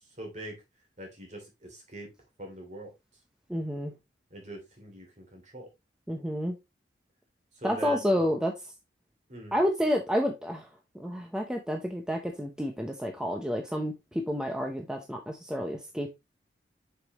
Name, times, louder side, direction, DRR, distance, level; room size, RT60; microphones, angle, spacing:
voice 1, 0.2-0.6 1.0-2.1 2.4-2.9 4.3-5.7 7.6-8.1 9.3-9.5, right 1 dB, 40° right, 2.9 m, -43 dB
voice 2, 3.5-3.9 6.1-6.6 7.6-8.7 9.5-10.7 10.9-16.1, equal, 5° right, 0.7 m, -30 dB
6.7 x 5.2 x 3.0 m
head